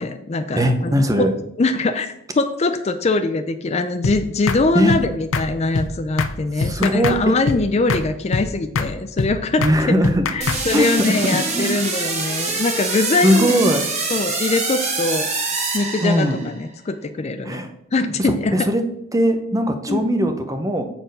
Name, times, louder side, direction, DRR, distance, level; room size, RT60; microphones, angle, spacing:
voice 1, 0.0-1.3 1.6-10.0 10.3-13.6 14.1-15.3 15.7-17.6 17.9-18.6 19.9-20.0, left 3 dB, 30° left, 9 dB, 0.4 m, -22 dB
voice 2, 0.6-1.3 4.7-5.0 6.5-7.4 9.6-10.3 10.7-11.7 13.2-13.9 16.0-16.4 17.4-17.7 18.2-18.8 19.1-20.8, equal, 15° right, 7 dB, 0.7 m, -19 dB
sound 1, 4.0-4.2 4.5-4.6 4.9-5.0 5.3-5.5 5.7-5.9 6.2-6.3 6.6-7.2 7.5-7.6 7.9-8.0 8.3-8.5 8.7-8.9 9.2-9.3 9.6-9.8 10.0-10.6, left 4 dB, 80° left, 0.6 m, -22 dB
sound 2, 10.4-16.6, right 3 dB, 35° right, 1.4 m, -25 dB
7.7 x 4.4 x 5.3 m, 0.79 s
head